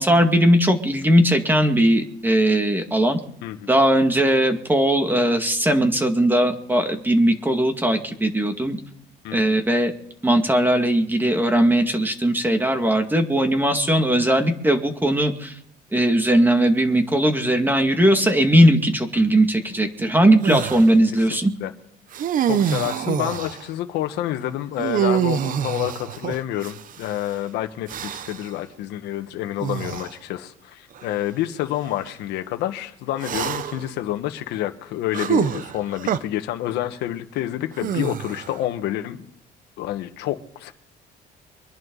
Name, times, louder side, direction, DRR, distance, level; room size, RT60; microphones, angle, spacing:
voice 1, 0.0-3.2 3.7-8.8 9.3-9.9 10.2-15.6 15.9-21.5, right 1 dB, 10° right, 5 dB, 2.2 m, -19 dB
voice 2, 9.2-9.6 19.2-19.3 21.1-21.3 21.6-21.7 22.5-39.2 39.8-40.7, left 13 dB, 85° left, 6 dB, 1.3 m, -28 dB
sound 1, 20.4-20.9 22.1-23.7 24.8-27.1 27.9-28.5 29.6-30.1 31.0-31.1 33.2-33.9 35.1-36.2 37.8-38.6, right 9 dB, 55° right, 0.8 m, -25 dB
24.5 x 11.0 x 4.0 m, 0.71 s
cardioid pair, 110°, 17 cm